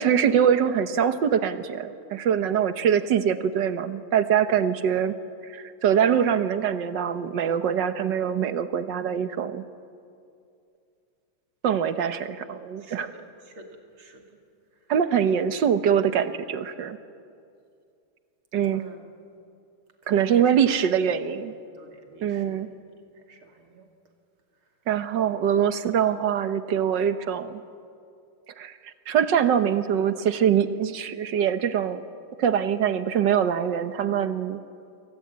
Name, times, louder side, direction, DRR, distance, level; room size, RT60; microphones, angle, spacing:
voice 1, 0.0-5.1 5.5-9.6 11.6-13.1 14.9-17.0 18.5-18.8 20.1-21.5 22.2-22.7 24.9-27.6 28.6-32.1 32.4-34.6, right 8 dB, 60° right, 11 dB, 1.6 m, -23 dB
voice 2, 12.8-13.7 14.0-14.2 18.7-19.0 20.0-21.1 21.7-22.7 23.1-23.9 25.4-25.5, right 3 dB, 75° right, 3 dB, 3.4 m, -45 dB
28.0 x 23.5 x 8.8 m, 2.4 s
omnidirectional pair, 2.3 m